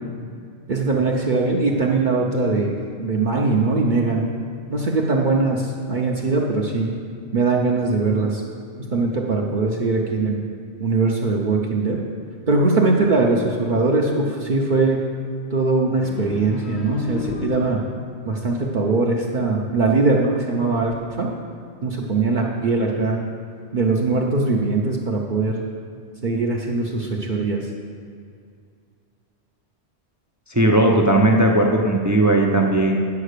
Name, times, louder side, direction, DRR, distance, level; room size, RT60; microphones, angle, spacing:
voice 1, 0.7-4.3 4.7-6.9 7.3-8.4 8.8-10.4 10.8-12.0 12.5-15.0 15.5-17.8 18.2-21.3 21.8-23.2 23.7-25.6 26.2-27.6, right 3 dB, 50° right, -2 dB, 0.8 m, -21 dB
sound 1, 16.0-18.1, left 3 dB, 70° left, 1.2 m, -32 dB
voice 2, 30.5-33.0, right 1 dB, 20° right, 1 dB, 0.5 m, -17 dB
9.6 x 5.3 x 6.6 m, 2.3 s
omnidirectional pair, 1.2 m